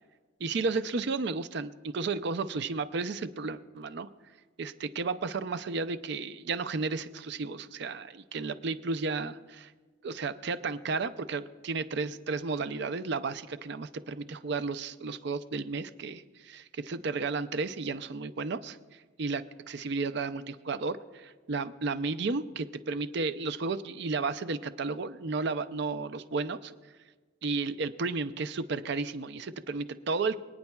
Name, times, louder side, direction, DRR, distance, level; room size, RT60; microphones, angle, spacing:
voice 1, 0.4-4.1 4.6-9.7 10.0-26.7 27.4-30.4, right 4 dB, 55° right, 12 dB, 0.5 m, -33 dB
24.5 x 9.6 x 2.3 m, 1.4 s
head